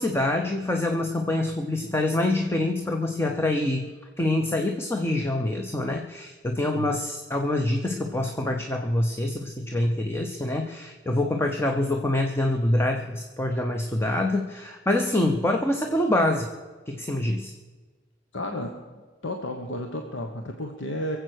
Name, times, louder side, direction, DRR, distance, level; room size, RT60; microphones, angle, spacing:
voice 1, 0.0-3.9 4.2-16.5 16.9-17.5, left 1 dB, 15° left, 4 dB, 0.8 m, -25 dB
voice 2, 18.3-18.8 19.2-21.2, left 1 dB, 80° left, 3 dB, 1.2 m, -32 dB
23.0 x 7.9 x 6.5 m, 1.4 s
head